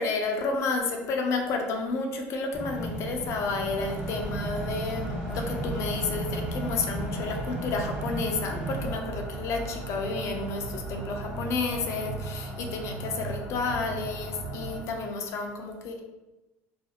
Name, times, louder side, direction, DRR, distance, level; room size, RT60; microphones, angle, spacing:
voice 1, 0.0-16.0, left 3 dB, 55° left, 3 dB, 0.4 m, -31 dB
sound 1, 2.5-8.9, right 2 dB, 15° right, 0.8 m, -35 dB
sound 2, 3.7-14.8, right 2 dB, 75° right, 0.9 m, -37 dB
2.4 x 2.4 x 2.7 m, 1.1 s
supercardioid pair, 90°, 6 cm